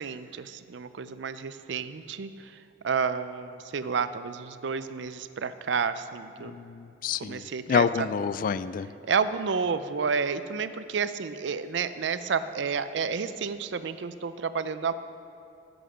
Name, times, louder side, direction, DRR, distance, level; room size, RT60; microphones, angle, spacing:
voice 1, 0.0-2.5 2.8-6.5 7.2-8.1 9.1-14.9, right 5 dB, 65° right, 13 dB, 0.5 m, -30 dB
voice 2, 6.4-8.9, left 6 dB, 45° left, 15 dB, 0.3 m, -28 dB
13.0 x 7.9 x 5.0 m, 2.8 s
head